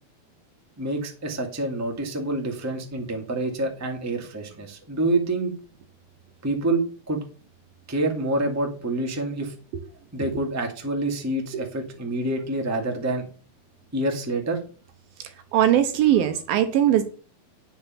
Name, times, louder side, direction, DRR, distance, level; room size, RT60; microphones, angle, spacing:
voice 1, 0.8-5.5 6.4-7.2 7.9-9.5 10.1-13.2 13.9-14.6, right 2 dB, 5° right, 2 dB, 1.2 m, -27 dB
voice 2, 15.2-17.0, right 11 dB, 75° right, 9 dB, 2.5 m, -21 dB
10.0 x 7.0 x 5.8 m, 0.38 s
omnidirectional pair, 4.7 m